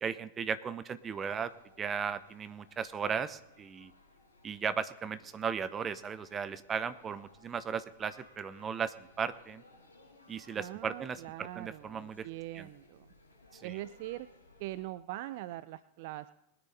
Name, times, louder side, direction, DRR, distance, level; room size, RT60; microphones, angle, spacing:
voice 1, 0.0-3.9 4.4-9.6 10.3-12.3 12.5-12.7 13.5-13.8, right 6 dB, 20° right, 15 dB, 0.8 m, -36 dB
sound 1, 0.9-14.8, left 2 dB, 75° left, 5.1 m, -62 dB
voice 2, 10.6-13.1 13.6-14.3 14.6-16.3, right 16 dB, 50° right, 16 dB, 0.4 m, -42 dB
20.5 x 9.9 x 4.1 m, 0.85 s
figure-of-eight pair, 90°, 0 cm